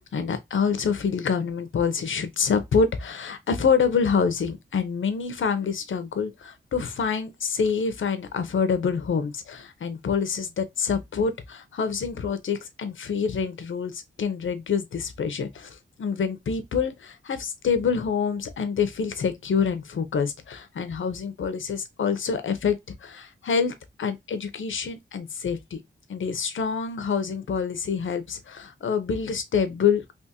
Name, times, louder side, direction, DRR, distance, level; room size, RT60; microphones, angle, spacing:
voice 1, 0.1-25.8 26.1-30.1, left 6 dB, 80° left, 0.7 m, -26 dB
3.5 x 3.0 x 2.8 m
wide cardioid pair, 120°, 20 cm